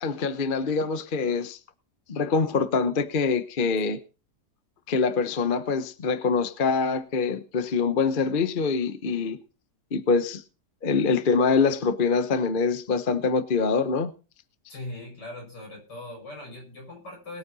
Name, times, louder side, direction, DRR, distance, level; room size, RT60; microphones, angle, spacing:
voice 1, 0.0-1.6 2.1-4.0 4.9-9.4 9.9-10.4 10.8-14.1, left 5 dB, 35° left, 0.9 m, -24 dB
voice 2, 14.7-17.4, left 1 dB, 80° left, 6.9 m, -40 dB
21.0 x 8.6 x 4.1 m
omnidirectional pair, 1.8 m